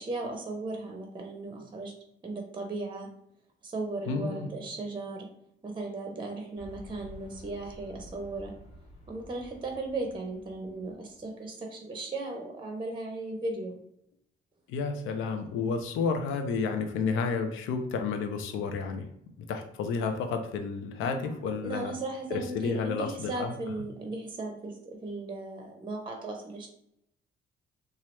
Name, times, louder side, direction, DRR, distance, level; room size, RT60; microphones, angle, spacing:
voice 1, 0.0-1.9 2.2-3.1 3.6-5.3 5.6-8.5 9.1-13.8 21.0-21.3 21.6-26.7, right 2 dB, 25° right, 3 dB, 0.6 m, -36 dB
voice 2, 4.1-4.5 14.7-19.1 19.5-21.9 22.3-23.5, left 5 dB, 90° left, 6 dB, 0.5 m, -31 dB
sound 1, 6.6-11.3, equal, 30° left, 0.8 m, -50 dB
2.8 x 2.4 x 3.1 m, 0.75 s
cardioid pair, 90°, 20 cm